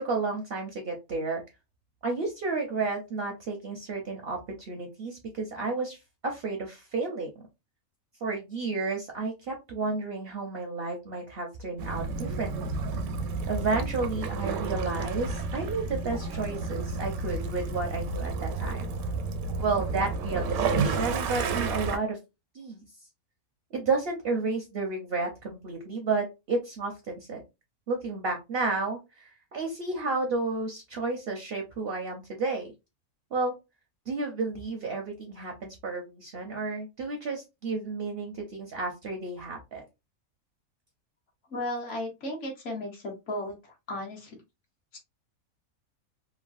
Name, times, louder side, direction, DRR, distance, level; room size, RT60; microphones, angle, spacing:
voice 1, 0.0-1.4 2.0-6.0 6.2-7.3 8.2-12.8 13.5-18.9 19.6-22.2 22.5-22.8 23.7-27.4 27.9-32.7 33.3-33.5 34.1-39.8, right 3 dB, 60° right, 2 dB, 0.7 m, -32 dB
Waves surf / Splash splatter / Trickle dribble, 11.8-22.0, right 4 dB, 80° right, 1.0 m, -31 dB
voice 2, 41.5-44.4 44.9-45.0, left 1 dB, 60° left, 1 dB, 1.2 m, -35 dB
3.1 x 2.2 x 2.4 m, 0.24 s
omnidirectional pair, 1.5 m